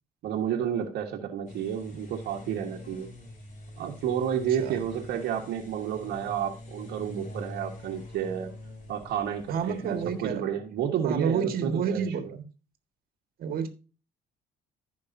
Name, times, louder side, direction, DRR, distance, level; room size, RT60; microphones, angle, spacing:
voice 1, 0.2-3.1 3.8-8.5 8.9-12.1, right 9 dB, 75° right, 1.5 m, -31 dB
sound 1, 1.5-10.4, left 1 dB, 45° left, 3.9 m, -45 dB
voice 2, 9.5-10.4 11.0-12.4 13.4-13.7, right 6 dB, 60° right, 1.7 m, -29 dB
15.0 x 5.3 x 2.7 m
cardioid pair, 110°, 17 cm